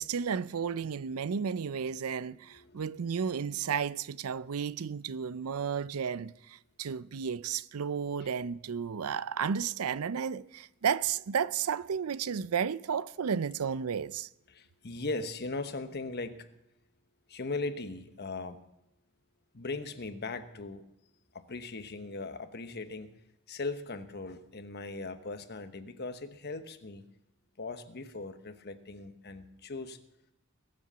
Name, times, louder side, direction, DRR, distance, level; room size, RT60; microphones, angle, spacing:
voice 1, 0.0-14.3, right 7 dB, 85° right, 0.5 m, -33 dB
voice 2, 2.2-3.1 14.5-16.5 17.3-18.6 19.5-20.8 21.3-23.1 23.5-27.0 27.6-30.0, left 3 dB, 50° left, 1.1 m, -39 dB
21.5 x 7.7 x 6.9 m
head